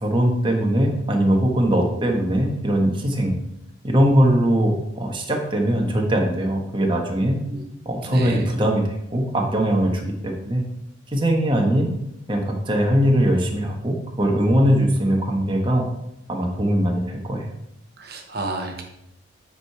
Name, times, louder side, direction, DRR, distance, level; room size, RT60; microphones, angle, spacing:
voice 1, 0.0-3.3 3.8-7.4 7.8-10.6 11.1-11.9 12.3-15.8 16.3-17.4, equal, 25° right, 1 dB, 1.2 m, -21 dB
voice 2, 8.1-8.4 18.0-18.8, right 2 dB, 50° right, 2 dB, 1.1 m, -31 dB
8.4 x 4.9 x 4.7 m, 0.84 s
head